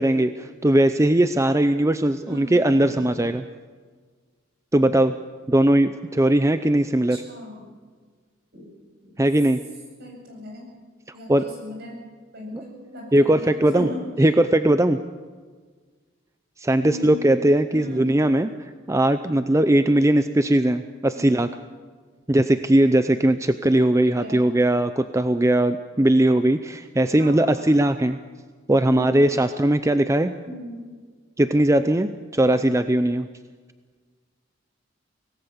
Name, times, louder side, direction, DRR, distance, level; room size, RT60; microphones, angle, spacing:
voice 1, 0.0-3.4 4.7-5.2 5.5-7.2 9.2-9.6 11.3-11.5 12.5-12.6 13.1-13.9 14.2-15.0 16.6-21.5 22.3-28.2 28.7-30.3 31.4-33.3, right 1 dB, 15° right, 10 dB, 0.6 m, -19 dB
voice 2, 2.2-3.1 7.1-7.6 8.5-8.7 9.0-9.1 10.0-10.7 11.1-12.0 12.3-14.1 16.8-17.2 17.7-18.1 21.1-21.5 24.0-24.5 27.2-27.5 28.8-29.5 30.5-30.9, left 1 dB, 60° right, 1 dB, 7.8 m, -38 dB
25.0 x 18.5 x 7.1 m, 1.5 s
head